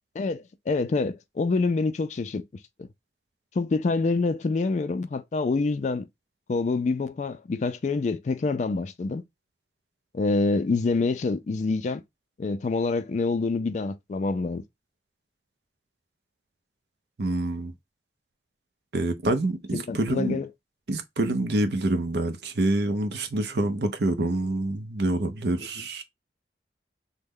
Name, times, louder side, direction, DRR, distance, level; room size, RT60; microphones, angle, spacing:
voice 1, 0.2-2.4 3.6-6.0 6.5-9.2 10.1-12.0 12.4-14.6 19.7-20.5, left 3 dB, 40° left, 0.3 m, -26 dB
voice 2, 17.2-17.7 18.9-20.4 20.9-26.0, right 2 dB, 65° right, 0.6 m, -26 dB
3.1 x 2.1 x 3.5 m
head